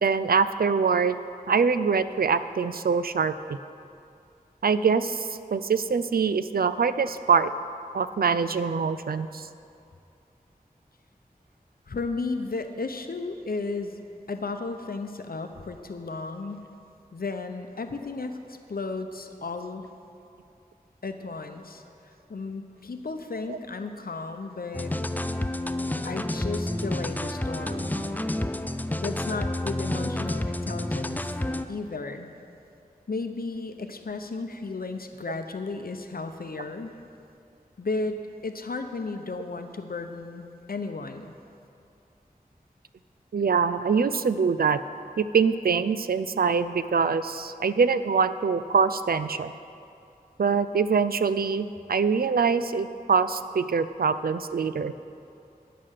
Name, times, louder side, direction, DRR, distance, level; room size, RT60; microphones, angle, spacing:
voice 1, 0.0-1.2 1.5-3.6 4.6-7.5 7.9-9.5 23.5-23.6 43.3-44.8 45.2-49.5 50.4-54.9, right 5 dB, 75° right, 13 dB, 0.4 m, -24 dB
voice 2, 11.9-14.0 14.3-16.7 17.1-19.9 21.0-21.8 22.3-24.9 26.0-27.9 29.0-31.4 31.7-32.3 33.1-36.9 37.8-41.3, left 3 dB, 70° left, 7 dB, 0.7 m, -34 dB
sound 1, 24.7-31.6, left 1 dB, 10° left, 0.4 m, -29 dB
10.0 x 7.6 x 6.5 m, 2.6 s
wide cardioid pair, 55°, 15 cm